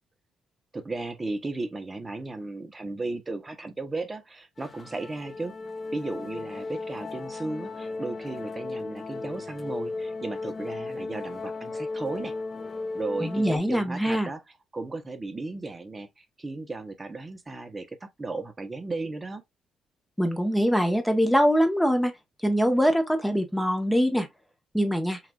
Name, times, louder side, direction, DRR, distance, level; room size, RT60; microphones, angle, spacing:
voice 1, 0.7-5.5 5.9-12.3 12.9-14.4 14.7-19.4, right 3 dB, 25° right, 1.0 m, -35 dB
sound 1, 4.6-13.6, left 3 dB, 30° left, 0.7 m, -35 dB
voice 2, 13.2-14.3 20.2-22.1 22.4-24.3 24.7-25.2, equal, 5° left, 1.2 m, -23 dB
5.9 x 2.7 x 2.4 m
cardioid pair, 90°, 0 cm